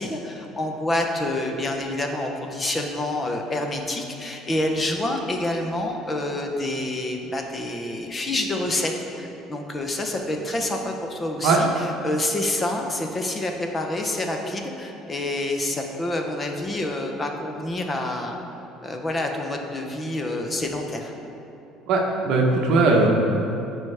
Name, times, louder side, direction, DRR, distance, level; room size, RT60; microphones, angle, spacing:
voice 1, 0.0-18.4 18.8-21.1, left 1 dB, 15° left, 3 dB, 0.6 m, -27 dB
voice 2, 21.9-23.3, right 3 dB, 55° right, 0 dB, 0.8 m, -19 dB
13.5 x 4.8 x 3.3 m, 2.9 s
cardioid pair, 180°, 0 cm